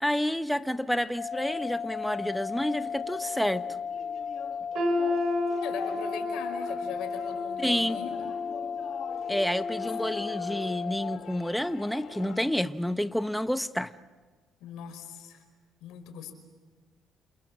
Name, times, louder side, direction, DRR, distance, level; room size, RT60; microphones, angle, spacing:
voice 1, 0.0-3.7 7.6-8.0 9.3-13.9, equal, ahead, 0.9 m, -29 dB
sound 1, 1.2-11.2, left 6 dB, 45° left, 2.6 m, -35 dB
sound 2, 2.8-12.4, left 8 dB, 60° left, 1.8 m, -45 dB
sound 3, 4.7-10.7 11.1-11.3 12.1-12.2, left 1 dB, 65° right, 5.4 m, -34 dB
voice 2, 5.5-8.3 14.6-15.4 15.8-16.3, left 9 dB, 85° left, 5.0 m, -40 dB
28.0 x 28.0 x 7.4 m
cardioid pair, 100°, 0 cm